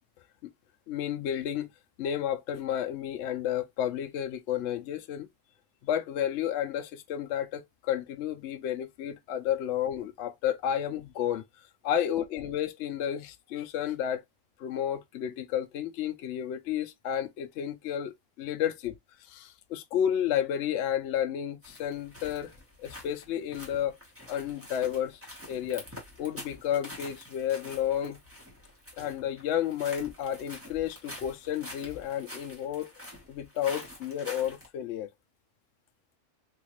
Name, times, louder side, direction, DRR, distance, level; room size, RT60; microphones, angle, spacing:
voice 1, 0.9-1.7 2.0-5.3 5.8-11.4 11.8-14.2 14.6-22.5 22.8-23.9 24.3-25.2 25.5-25.8 26.2-28.2 29.0-32.9 33.3-35.1, left 10 dB, 65° left, 0.7 m, -31 dB
sound 1, 21.6-34.7, left 1 dB, 10° right, 0.9 m, -47 dB
3.6 x 2.4 x 3.0 m
omnidirectional pair, 1.6 m